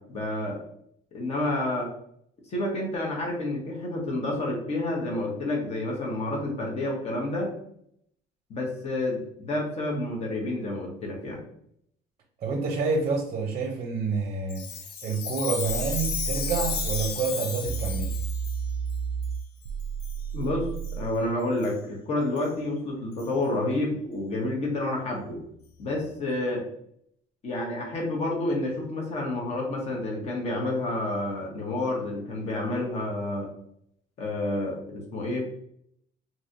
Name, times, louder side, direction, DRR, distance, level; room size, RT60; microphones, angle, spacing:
voice 1, 0.1-0.6 1.1-1.9 2.5-7.5 8.5-11.4 20.3-25.4 25.8-26.6 27.4-33.5 34.2-35.5, left 1 dB, 40° left, 0 dB, 1.1 m, -29 dB
voice 2, 12.4-14.6 15.0-18.2, right 4 dB, 40° right, 1 dB, 0.6 m, -28 dB
Chime, 14.5-18.6 19.2-19.3 20.0-20.2 20.8-20.9 21.6-21.7 22.4-22.5 23.2-23.3, left 7 dB, 80° left, 0.5 m, -33 dB
sound 1, 15.7-17.1 17.6-21.1, right 6 dB, 85° right, 0.4 m, -32 dB
3.1 x 2.7 x 2.7 m, 0.69 s
cardioid pair, 145°, 16 cm